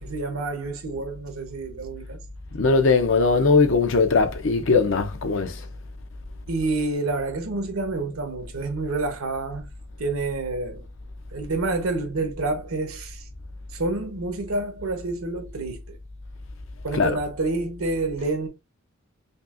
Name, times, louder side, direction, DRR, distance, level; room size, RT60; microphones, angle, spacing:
voice 1, 0.0-2.2 6.5-9.6 10.0-10.9 11.3-13.3 13.7-16.0 16.8-18.5, right 2 dB, 85° right, 1.1 m, -28 dB
voice 2, 2.5-5.6 16.9-17.2, left 4 dB, 65° left, 0.7 m, -20 dB
5.3 x 2.3 x 2.5 m
head